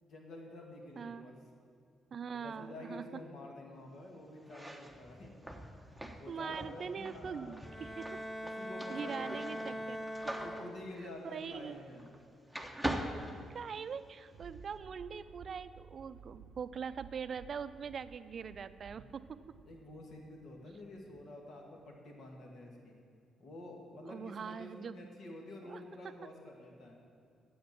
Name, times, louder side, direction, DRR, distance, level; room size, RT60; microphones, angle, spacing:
voice 1, 0.0-1.4 2.3-5.4 6.2-7.6 8.4-9.9 10.4-12.1 18.9-19.1 19.7-22.9 23.4-27.0, left 1 dB, 60° left, 0 dB, 2.1 m, -49 dB
voice 2, 1.0-1.3 2.1-3.1 6.3-8.2 8.9-10.3 11.3-11.8 13.5-19.6 24.1-25.1 25.7-25.8, right 6 dB, 50° right, 13 dB, 0.4 m, -42 dB
sound 1, 4.4-12.2 12.5-14.1, right 1 dB, ahead, 1.0 m, -43 dB
Bowed string instrument, 7.6-11.1, equal, 25° left, 0.7 m, -42 dB
Thunder, 14.3-21.4 21.9-22.0, right 6 dB, 85° right, 0.7 m, -56 dB
9.2 x 7.9 x 7.5 m, 2.2 s
cardioid pair, 90°, 0 cm